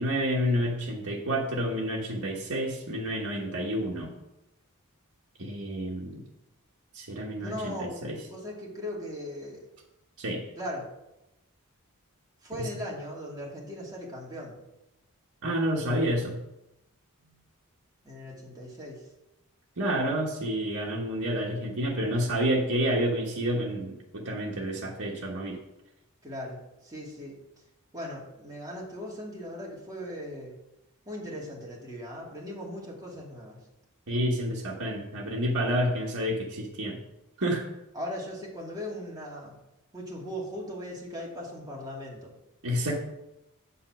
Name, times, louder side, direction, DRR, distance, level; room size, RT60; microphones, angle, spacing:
voice 1, 0.0-4.1 5.4-6.2 6.9-8.2 10.2-10.4 12.6-12.7 15.4-16.4 19.8-25.6 34.1-37.0 37.4-37.7 42.6-43.0, equal, 70° right, -3 dB, 1.3 m, -29 dB
voice 2, 7.4-9.7 10.6-10.9 12.4-14.7 17.2-17.4 18.0-19.1 26.2-27.4 27.9-30.6 31.1-33.6 37.9-39.6 39.9-42.3, equal, 15° right, -4 dB, 2.4 m, -38 dB
7.8 x 5.6 x 6.0 m, 0.92 s
head